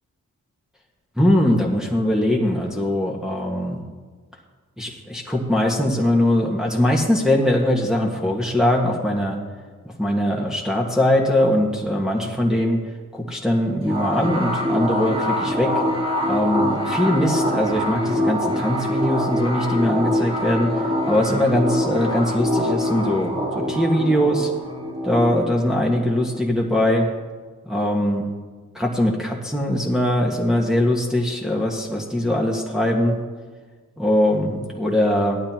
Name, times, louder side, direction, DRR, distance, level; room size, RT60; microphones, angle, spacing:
voice 1, 1.2-3.8 4.8-9.4 10.0-12.8 13.1-15.7 16.2-24.5 25.0-27.1 27.6-28.3 28.7-33.2 34.0-35.4, left 1 dB, ahead, -2 dB, 1.6 m, -21 dB
sound 1, 13.9-27.1, equal, 20° right, 3.5 m, -25 dB
16.5 x 11.5 x 3.0 m, 1.5 s
cardioid pair, 70°, 32 cm